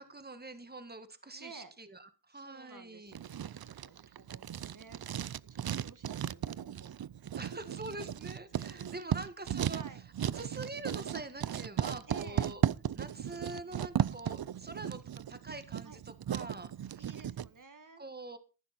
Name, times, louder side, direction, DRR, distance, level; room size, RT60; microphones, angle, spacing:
voice 1, 0.0-3.2 7.4-9.8 10.4-12.6 12.9-15.0 15.3-16.0 16.3-16.7 18.0-18.4, right 2 dB, 25° right, 10 dB, 1.5 m, -44 dB
voice 2, 1.3-1.7 2.3-7.0 7.3-7.8 8.7-9.2 9.7-10.0 12.1-12.6 13.5-13.9 15.8-16.0 17.0-18.0, right 4 dB, 60° right, 9 dB, 1.6 m, -54 dB
Writing, 3.1-17.5, right 10 dB, 85° right, 0.5 m, -36 dB
14.5 x 11.0 x 4.2 m, 0.33 s
wide cardioid pair, 65°, 35 cm